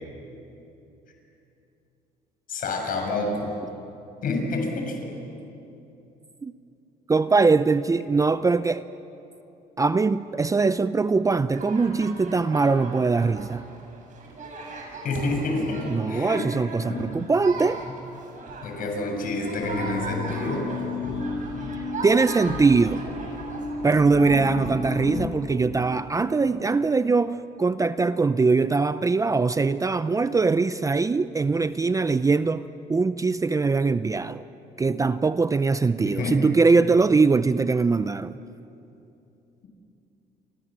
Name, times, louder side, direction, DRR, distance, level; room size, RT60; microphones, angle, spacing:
voice 1, 2.5-3.5 4.2-5.0 15.0-16.4 16.9-17.2 18.6-20.7 36.0-36.5, left 2 dB, 55° left, 2 dB, 6.8 m, -28 dB
voice 2, 7.1-8.8 9.8-13.6 15.9-17.8 22.0-23.0 23.8-34.4 34.8-38.4, right 4 dB, 20° right, 13 dB, 0.6 m, -22 dB
sound 1, 11.5-25.3, right 3 dB, 50° right, 7.1 m, -39 dB
sound 2, 19.6-25.3, left 4 dB, 85° left, 7.4 m, -32 dB
29.5 x 24.5 x 7.5 m, 2.8 s
cardioid pair, 110°, 17 cm